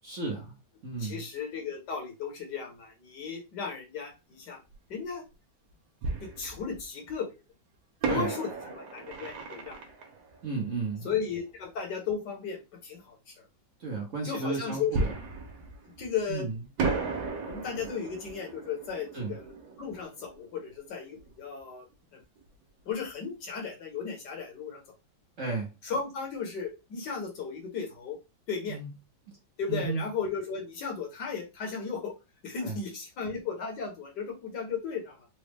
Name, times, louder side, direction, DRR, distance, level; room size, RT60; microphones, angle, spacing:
voice 1, 0.0-0.6 0.8-1.2 8.1-8.3 10.4-11.1 13.8-15.0 16.3-16.6 19.1-19.3 25.4-25.7 28.7-28.9 29.7-30.1 32.6-32.8, right 4 dB, 55° right, 0 dB, 1.0 m, -33 dB
voice 2, 1.0-4.6 4.9-5.2 6.2-7.3 8.1-9.8 11.0-13.5 14.2-15.1 16.0-16.5 17.2-21.9 22.1-22.2 22.9-24.8 25.8-28.2 28.5-28.8 29.6-32.1 32.4-35.3, left 6 dB, 65° left, 1 dB, 1.5 m, -35 dB
Fireworks, 4.7-4.8 6.0-7.1 8.0-11.5 14.9-16.4 16.8-21.3 21.6-21.7 22.2-22.4, right 4 dB, 80° right, 1.5 m, -35 dB
4.1 x 2.2 x 3.3 m, 0.26 s
omnidirectional pair, 2.1 m